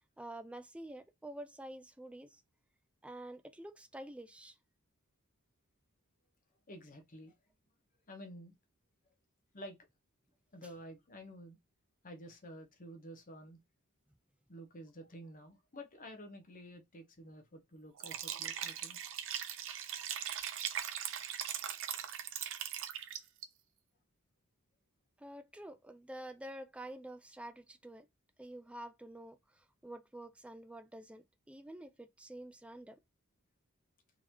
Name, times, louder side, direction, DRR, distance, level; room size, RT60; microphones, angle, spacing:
voice 1, 0.2-2.4 3.0-4.6 25.2-28.1 28.4-33.0, right 1 dB, 5° right, 0.4 m, -48 dB
voice 2, 6.7-7.3 8.1-8.5 9.5-9.8 10.5-11.6 12.0-13.6 14.5-19.0, equal, 40° left, 0.9 m, -50 dB
Liquid, 18.0-23.4, right 10 dB, 60° right, 0.5 m, -40 dB
3.8 x 3.0 x 2.8 m
head